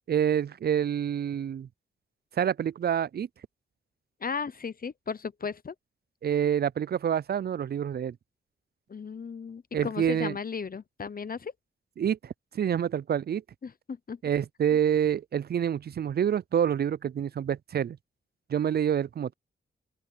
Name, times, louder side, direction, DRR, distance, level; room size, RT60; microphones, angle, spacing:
voice 1, 0.1-1.7 2.3-3.3 6.2-8.2 9.7-10.4 12.0-13.4 14.2-18.0 18.5-19.3, right 9 dB, 50° right, 0.4 m, -27 dB
voice 2, 4.2-5.7 8.9-11.5 13.6-14.2, left 5 dB, 45° left, 0.8 m, -35 dB
open air
cardioid pair, 50°, 21 cm